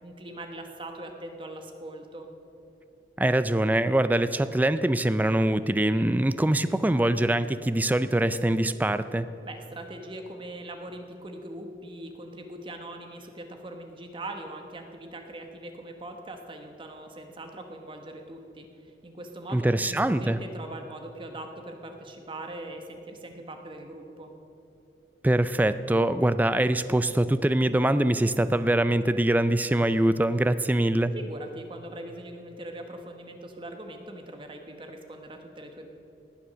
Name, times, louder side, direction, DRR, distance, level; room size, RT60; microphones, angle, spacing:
voice 1, 0.0-2.3 9.4-24.3 31.1-35.9, right 1 dB, 30° right, 5 dB, 1.0 m, -41 dB
voice 2, 3.2-9.3 19.5-20.4 25.2-31.1, right 1 dB, 10° right, 13 dB, 0.3 m, -23 dB
18.5 x 7.1 x 6.2 m, 2.8 s
head